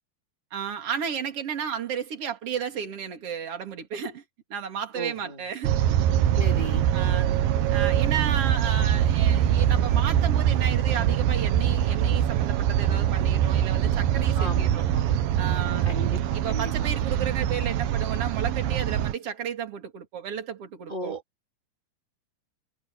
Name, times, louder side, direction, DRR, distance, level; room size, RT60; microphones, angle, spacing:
voice 1, 0.5-4.2 4.5-5.7 6.9-7.3 7.7-14.8 15.4-15.9 16.3-21.1, right 7 dB, 40° right, 3.2 m, -33 dB
voice 2, 4.9-5.4 6.4-6.8 14.4-15.2 15.8-16.9 20.9-21.2, right 1 dB, 15° right, 2.8 m, -36 dB
sound 1, 5.6-19.1, right 10 dB, 75° right, 2.7 m, -23 dB
omnidirectional pair, 4.3 m